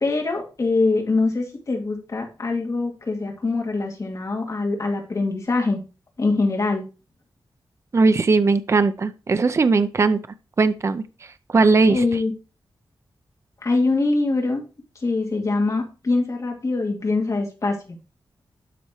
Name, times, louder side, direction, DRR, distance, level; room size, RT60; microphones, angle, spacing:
voice 1, 0.0-5.8 6.2-6.8 11.9-12.3 13.6-14.6 15.0-17.8, left 3 dB, 40° left, 1 dB, 2.2 m, -23 dB
voice 2, 7.9-10.2 10.6-11.0 11.5-12.2, right 4 dB, 35° right, 12 dB, 0.5 m, -18 dB
12.0 x 4.3 x 2.9 m, 0.31 s
wide cardioid pair, 165°, 9 cm